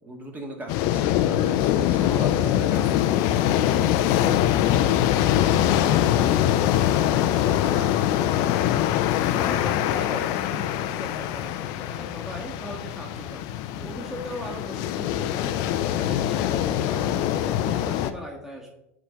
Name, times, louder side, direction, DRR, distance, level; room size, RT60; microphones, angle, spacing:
voice 1, 0.0-3.5 13.8-14.0, right 1 dB, 25° right, 2 dB, 1.8 m, -39 dB
sound 1, 0.7-18.1, left 12 dB, 55° left, 0.6 m, -23 dB
voice 2, 4.6-18.7, equal, 5° right, -2 dB, 1.7 m, -39 dB
10.0 x 3.8 x 4.4 m, 0.87 s
hypercardioid pair, 85°, 7 cm